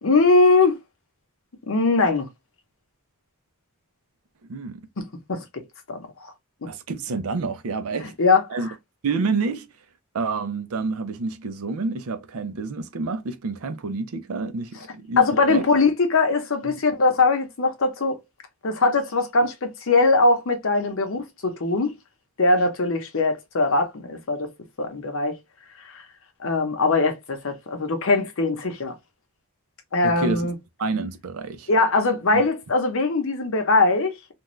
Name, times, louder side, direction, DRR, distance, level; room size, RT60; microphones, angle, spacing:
voice 1, 0.0-0.8 1.7-2.3 5.3-6.3 8.2-8.4 15.2-18.2 18.6-21.9 22.4-24.5 24.8-25.4 26.4-28.9 29.9-30.5 31.7-34.1, left 3 dB, 60° left, 0.7 m, -21 dB
voice 2, 4.4-4.8 6.7-8.2 8.5-8.7 9.0-9.7 10.1-15.6 16.6-16.8 30.0-30.5 30.8-31.7 32.3-32.4, right 4 dB, 70° right, 0.5 m, -28 dB
2.5 x 2.2 x 3.0 m
head